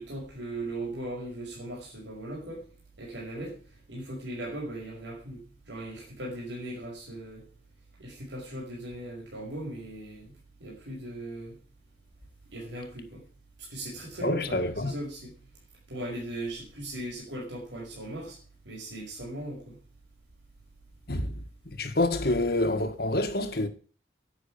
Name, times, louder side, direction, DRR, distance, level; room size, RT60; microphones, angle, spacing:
voice 1, 0.0-2.6 3.0-3.6 3.9-7.4 8.0-10.3 10.6-11.6 12.5-13.2 13.7-15.3 15.9-18.4 18.6-19.8, right 1 dB, 85° right, 5.6 m, -38 dB
voice 2, 14.2-14.9 21.1-21.4 21.6-23.7, left 2 dB, 55° left, 1.7 m, -27 dB
10.5 x 9.2 x 8.6 m
head